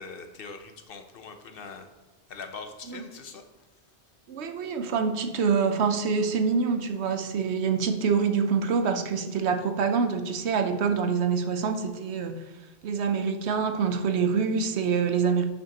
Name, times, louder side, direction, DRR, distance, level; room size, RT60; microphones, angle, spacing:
voice 1, 0.0-1.9 2.3-3.4, left 4 dB, 60° left, 7 dB, 0.9 m, -42 dB
voice 2, 4.3-12.4 12.8-15.4, right 5 dB, 75° right, 7 dB, 1.0 m, -26 dB
10.5 x 5.9 x 2.9 m, 1.2 s
omnidirectional pair, 1.1 m